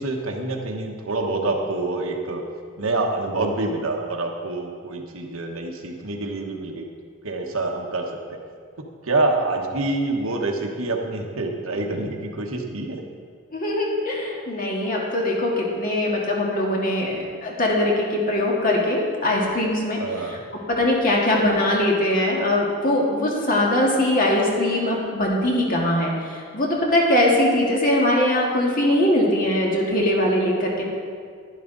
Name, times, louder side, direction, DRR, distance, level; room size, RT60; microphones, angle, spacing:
voice 1, 0.0-2.4 2.8-6.8 7.2-8.4 9.0-13.0 20.0-20.4, right 2 dB, 85° right, 2 dB, 1.2 m, -26 dB
voice 2, 13.5-20.0 20.3-20.4 20.7-26.1 26.5-30.8, left 1 dB, 40° left, -2 dB, 1.9 m, -21 dB
11.0 x 11.0 x 4.0 m, 2.1 s
head